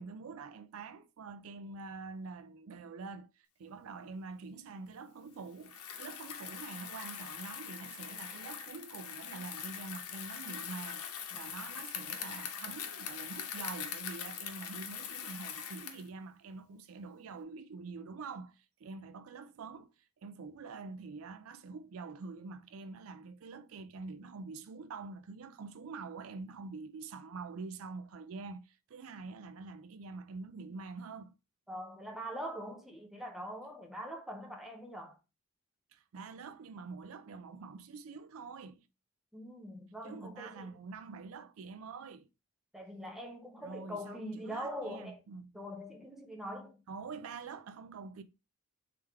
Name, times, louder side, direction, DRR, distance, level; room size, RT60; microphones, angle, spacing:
voice 1, 0.0-11.0 11.3-31.4 35.9-38.9 40.0-42.3 43.6-45.6 46.9-48.2, right 4 dB, 70° right, 0.4 m, -46 dB
Bicycle, 5.6-16.1, left 8 dB, 85° left, 0.8 m, -42 dB
voice 2, 31.7-35.2 39.3-40.7 42.7-45.2 45.5-46.8, equal, ahead, 0.7 m, -43 dB
3.6 x 3.4 x 4.4 m
head